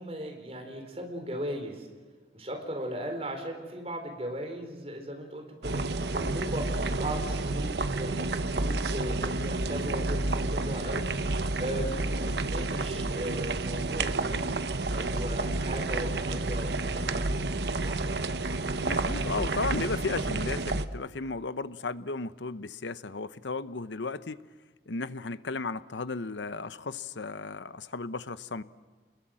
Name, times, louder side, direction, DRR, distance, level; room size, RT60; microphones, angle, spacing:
voice 1, 0.0-1.9 2.3-17.3 17.8-18.1, right 1 dB, 35° right, 3 dB, 4.2 m, -38 dB
sound 1, 5.6-20.8, right 2 dB, 70° right, 1.0 m, -30 dB
voice 2, 18.8-24.4 24.9-28.6, left 3 dB, 85° left, 14 dB, 0.9 m, -34 dB
29.0 x 21.5 x 7.6 m, 1.4 s
head